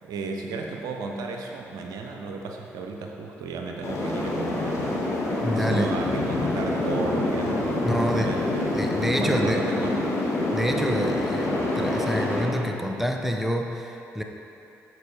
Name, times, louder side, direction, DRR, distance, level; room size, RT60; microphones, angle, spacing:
voice 1, 0.0-5.0 5.5-8.8 9.2-10.1, right 3 dB, 70° right, 2 dB, 0.6 m, -33 dB
sound 1, 3.8-12.4, left 2 dB, 50° left, 1.8 m, -26 dB
voice 2, 5.4-5.9 7.8-8.3 8.7-9.7 10.5-14.2, equal, 5° right, 3 dB, 0.8 m, -27 dB
12.5 x 4.6 x 3.3 m, 2.9 s
hypercardioid pair, 45°, 7 cm